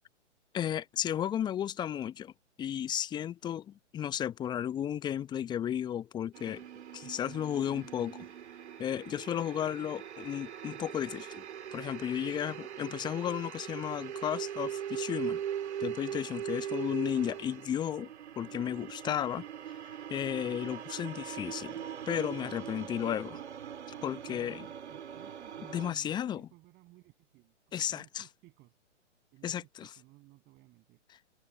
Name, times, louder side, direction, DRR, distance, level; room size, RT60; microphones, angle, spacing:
voice 1, 0.5-2.3 2.6-6.6 6.9-8.3 8.8-11.4 11.7-15.4 15.8-18.1 18.4-19.4 20.1-23.4 24.0-24.6 25.7-26.4 27.7-28.3 29.4-29.9, left 10 dB, 10° left, 0.8 m, -34 dB
sound 1, 6.3-25.9, right 9 dB, 65° right, 2.1 m, -41 dB
voice 2, 12.2-12.8 16.4-16.5 24.2-28.8 29.3-31.0, right 20 dB, 30° right, 7.6 m, -59 dB
figure-of-eight pair, 125°, 37 cm